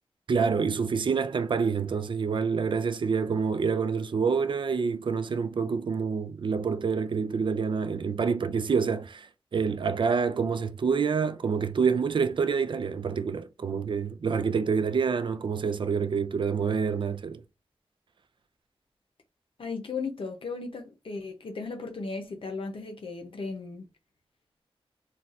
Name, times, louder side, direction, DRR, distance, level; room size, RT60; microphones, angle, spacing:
voice 1, 0.3-17.4, right 5 dB, 55° right, 0.4 m, -27 dB
voice 2, 19.6-23.8, left 4 dB, 60° left, 0.6 m, -36 dB
3.9 x 2.3 x 2.4 m
wide cardioid pair, 125°, 10 cm